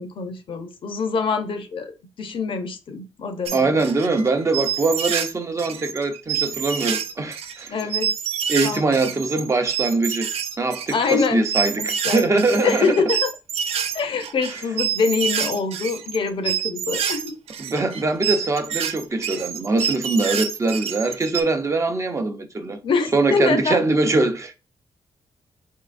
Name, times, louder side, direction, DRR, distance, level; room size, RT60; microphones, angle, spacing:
voice 1, 0.0-3.8 7.7-8.1 8.6-9.1 10.9-11.5 11.8-13.3 13.9-17.3 22.8-23.8, left 5 dB, 60° left, 0.8 m, -25 dB
voice 2, 3.5-7.7 8.5-10.3 10.6-13.0 17.6-22.8 23.1-24.6, right 3 dB, 30° right, 0.7 m, -22 dB
sound 1, 3.5-5.3 5.6-21.4, right 8 dB, 85° right, 0.5 m, -27 dB
4.9 x 3.6 x 2.5 m
cardioid pair, 110°, 10 cm